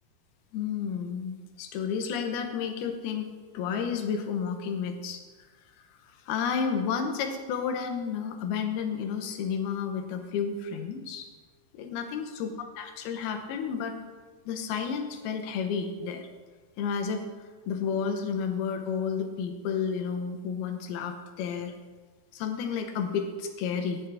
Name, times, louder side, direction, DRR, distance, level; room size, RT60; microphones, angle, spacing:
voice 1, 0.5-5.2 6.3-11.3 11.7-13.9 14.5-16.3 16.8-17.3 17.7-21.7 22.3-24.0, left 6 dB, 80° left, 6 dB, 2.9 m, -31 dB
17.5 x 7.4 x 3.5 m, 1.4 s
omnidirectional pair, 4.4 m